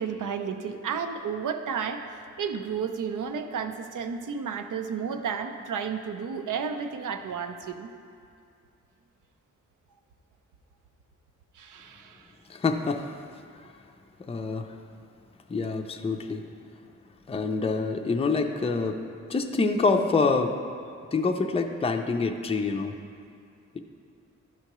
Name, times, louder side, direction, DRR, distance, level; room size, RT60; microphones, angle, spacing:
voice 1, 0.0-2.0 2.4-7.9 11.6-12.2, right 6 dB, 85° right, 7 dB, 0.6 m, -32 dB
voice 2, 12.5-13.2 14.3-14.7 15.5-16.4 17.3-19.0 19.3-20.6 21.1-23.0, left 4 dB, 20° left, 5 dB, 0.4 m, -26 dB
12.0 x 5.6 x 3.0 m, 2.4 s
wide cardioid pair, 120°, 30 cm